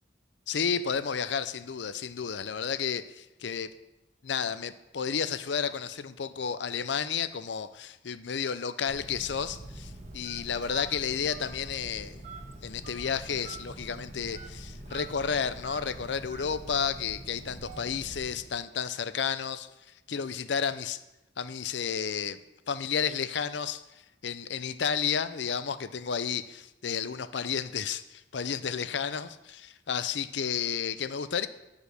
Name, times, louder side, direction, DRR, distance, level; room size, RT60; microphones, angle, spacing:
voice 1, 0.5-3.7 4.2-12.2 12.6-19.7 20.1-21.0 21.4-22.4 22.7-23.8 24.2-31.5, left 7 dB, 80° left, 13 dB, 0.5 m, -32 dB
Telephone, 8.9-18.6, right 2 dB, 40° right, 1.7 m, -44 dB
9.8 x 5.1 x 6.6 m, 0.97 s
head